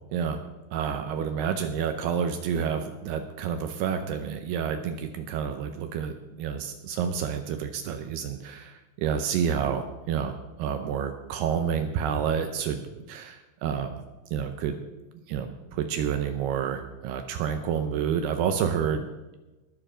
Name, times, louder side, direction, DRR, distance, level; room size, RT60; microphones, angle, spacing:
voice 1, 0.7-14.0 14.3-14.8 15.3-19.1, right 7 dB, 75° right, 7 dB, 2.5 m, -29 dB
20.5 x 7.0 x 5.0 m, 1.1 s
omnidirectional pair, 5.3 m